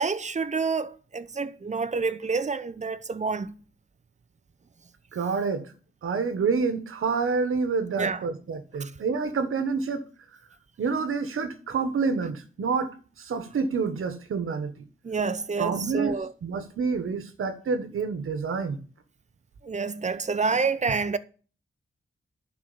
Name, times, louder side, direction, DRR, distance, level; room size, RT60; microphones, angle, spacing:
voice 1, 0.0-3.6 8.0-8.2 8.8-8.9 15.0-16.3 19.6-21.2, right 4 dB, 35° right, 0.8 m, -28 dB
voice 2, 5.1-5.7 6.0-10.0 10.8-14.9 15.6-16.1 16.4-18.8, right 5 dB, 90° right, 1.4 m, -28 dB
11.5 x 4.6 x 6.9 m
cardioid pair, 85°, 21 cm